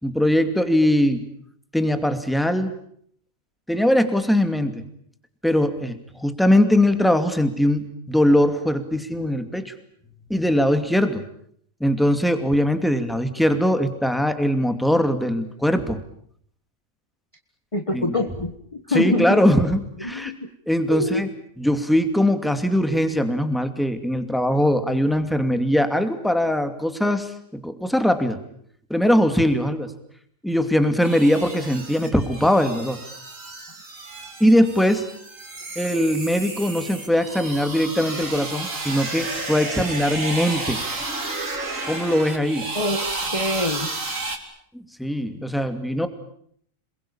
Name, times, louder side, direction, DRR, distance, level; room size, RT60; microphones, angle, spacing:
voice 1, 0.0-1.2 1.7-2.7 3.7-4.8 5.4-9.7 10.3-11.2 11.8-16.0 17.9-18.1 18.9-20.3 20.7-21.3 21.6-28.4 28.9-29.9 30.4-33.0 34.4-35.1 35.8-40.8 41.9-42.7 44.7-46.1, equal, ahead, 8 dB, 2.4 m, -21 dB
voice 2, 17.7-19.4 20.0-20.4 20.9-21.2 42.7-43.9, left 2 dB, 25° left, 5 dB, 1.6 m, -25 dB
sound 1, 31.0-44.4, right 3 dB, 70° right, 3.5 m, -32 dB
28.0 x 21.5 x 8.8 m, 0.65 s
omnidirectional pair, 1.4 m